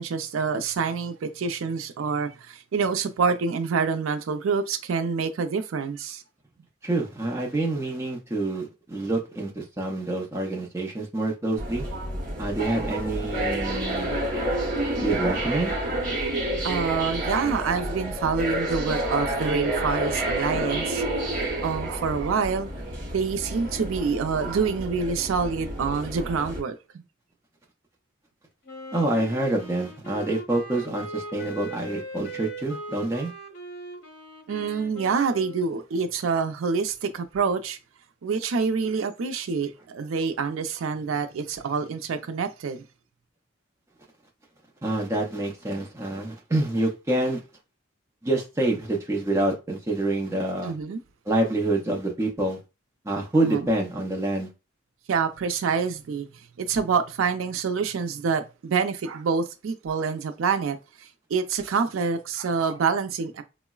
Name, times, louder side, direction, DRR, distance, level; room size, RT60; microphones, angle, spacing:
voice 1, 0.0-6.2 16.6-21.0 21.6-22.7 23.1-26.8 34.5-37.8 38.2-42.8 50.6-51.0 53.4-53.6 55.1-56.3 56.6-63.4, right 5 dB, 90° right, 0.4 m, -27 dB
voice 2, 6.8-11.9 12.4-14.2 15.0-15.7 28.9-33.3 44.8-47.4 48.2-50.7 51.3-52.6 53.0-54.5, right 2 dB, 15° right, 0.5 m, -27 dB
sound 1, 11.6-26.6, right 1 dB, 45° right, 0.9 m, -29 dB
Wind instrument woodwind instrument, 28.6-35.8, right 1 dB, 55° left, 0.8 m, -40 dB
3.7 x 2.0 x 2.3 m
head